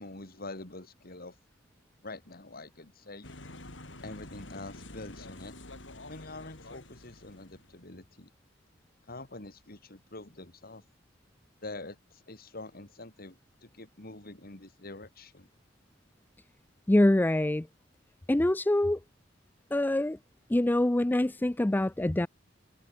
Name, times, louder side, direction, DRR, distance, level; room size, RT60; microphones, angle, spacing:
voice 1, 0.0-1.3 2.0-3.3 4.0-5.5 6.1-8.3 9.1-10.8 11.6-15.5, left 2 dB, 55° left, 3.2 m, -45 dB
sound 1, 3.2-7.9, left 2 dB, 75° left, 5.6 m, -48 dB
voice 2, 16.9-17.7 18.3-19.0 19.7-20.2 20.5-22.3, left 1 dB, 10° left, 0.4 m, -25 dB
head